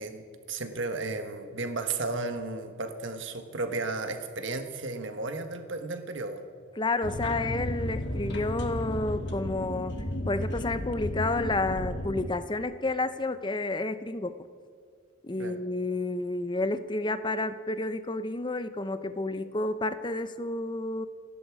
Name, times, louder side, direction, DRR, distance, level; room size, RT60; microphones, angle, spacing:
voice 1, 0.0-6.4 15.4-15.6, right 3 dB, 55° right, 7 dB, 1.3 m, -34 dB
voice 2, 6.8-9.9 10.3-14.4 15.2-21.1, left 2 dB, 20° left, 12 dB, 0.6 m, -30 dB
sound 1, 7.0-12.3, left 1 dB, 55° left, 1.4 m, -33 dB
27.0 x 11.0 x 4.8 m, 2.1 s
head